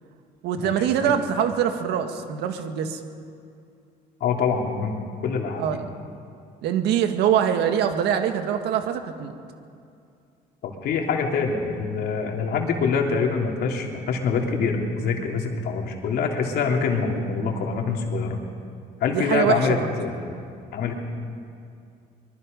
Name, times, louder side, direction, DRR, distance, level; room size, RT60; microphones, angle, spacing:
voice 1, 0.4-3.0 5.6-5.8 6.6-9.3 19.1-19.9, right 9 dB, 80° right, 6 dB, 1.9 m, -23 dB
voice 2, 4.2-5.0 5.2-5.8 10.6-18.4 19.0-20.4 20.7-21.0, left 5 dB, 70° left, 1 dB, 3.2 m, -25 dB
24.0 x 23.0 x 5.4 m, 2.4 s
cardioid pair, 110°, 17 cm